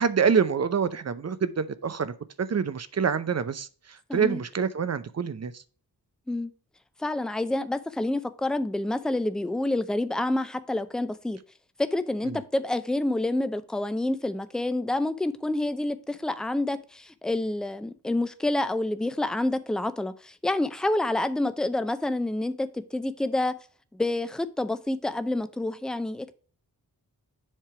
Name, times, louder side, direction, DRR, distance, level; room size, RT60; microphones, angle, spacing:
voice 1, 0.0-5.6 12.2-12.4, right 6 dB, 45° right, 0.6 m, -26 dB
voice 2, 4.1-4.4 6.3-6.5 7.0-11.4 11.8-23.5 23.9-26.3, left 1 dB, ahead, 0.5 m, -28 dB
7.4 x 3.3 x 5.9 m
wide cardioid pair, 120°, 38 cm